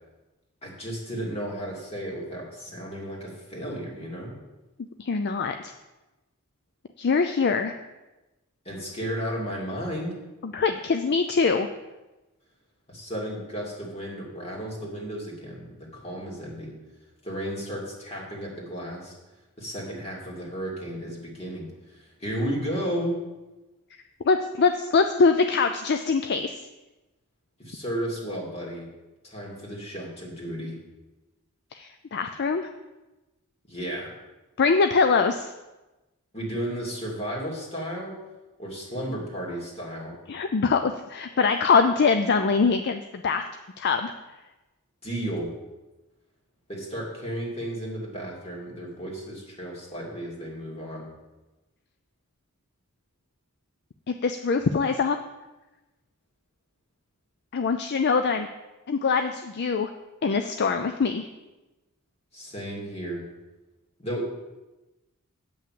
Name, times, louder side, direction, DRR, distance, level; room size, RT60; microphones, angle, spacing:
voice 1, 0.6-4.3 8.6-10.2 12.9-16.7 17.2-19.2 19.6-21.7 22.0-23.2 27.6-28.9 29.2-30.8 33.7-34.1 36.3-38.1 38.6-40.1 45.0-45.5 46.7-51.1 62.3-63.2 64.0-64.4, equal, 30° left, -3 dB, 2.8 m, -33 dB
voice 2, 5.0-5.7 7.0-7.7 10.4-11.7 24.2-26.6 31.7-32.7 34.6-35.5 40.3-43.4 43.8-44.1 54.1-55.2 57.5-58.5 58.9-59.9 60.2-61.3, left 4 dB, 50° left, 8 dB, 0.5 m, -23 dB
8.7 x 5.9 x 7.6 m, 1.1 s
head